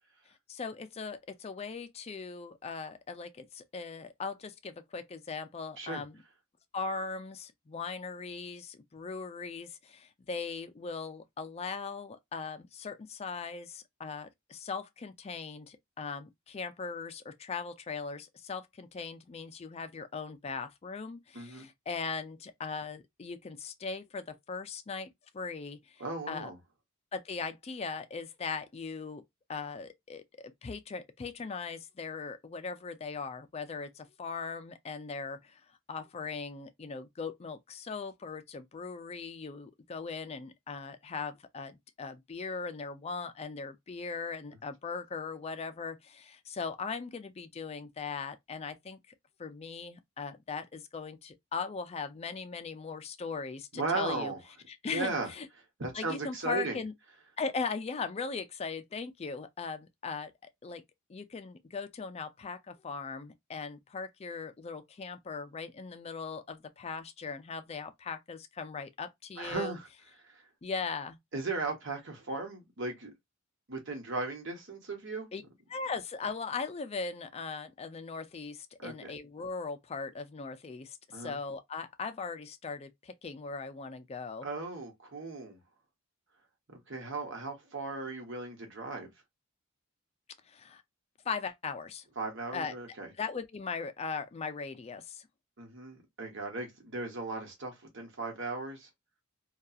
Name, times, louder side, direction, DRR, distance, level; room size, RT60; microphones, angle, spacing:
voice 1, 0.5-6.2 6.7-26.5 27.1-29.2 29.5-35.6 35.9-49.0 49.4-54.3 54.7-55.5 55.9-56.9 57.4-60.8 61.1-69.7 70.6-71.2 75.3-75.4 75.7-84.5 90.5-90.8 91.3-92.1 92.5-92.7 93.2-95.3, left 5 dB, 30° left, 0.4 m, -39 dB
voice 2, 21.3-21.7 26.0-26.6 53.7-54.4 54.9-55.3 55.8-56.8 69.4-69.9 70.2-70.4 71.3-73.1 73.7-75.3 78.8-79.1 81.1-81.4 84.4-85.6 86.7-89.1 92.2-93.1 95.6-98.9, right 3 dB, 60° right, 1.0 m, -37 dB
2.7 x 2.3 x 2.3 m
head